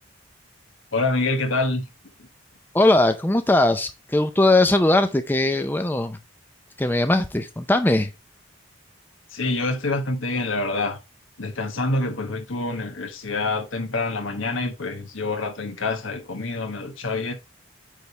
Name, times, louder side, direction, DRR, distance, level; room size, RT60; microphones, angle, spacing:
voice 1, 0.9-1.9 2.2-2.3 9.3-11.0 11.4-17.3, left 2 dB, 80° left, 1.4 m, -26 dB
voice 2, 2.7-6.2 6.8-8.1, left 2 dB, 10° left, 0.5 m, -20 dB
9.2 x 3.5 x 4.1 m
head